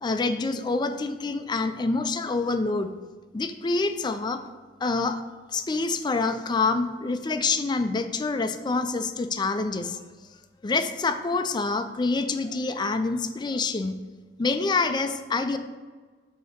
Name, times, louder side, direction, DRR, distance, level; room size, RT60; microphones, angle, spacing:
voice 1, 0.0-2.9 3.3-4.4 4.8-5.2 5.5-10.0 10.6-14.0 14.4-15.6, left 3 dB, 25° left, 8 dB, 0.4 m, -26 dB
7.4 x 2.8 x 5.6 m, 1.4 s
head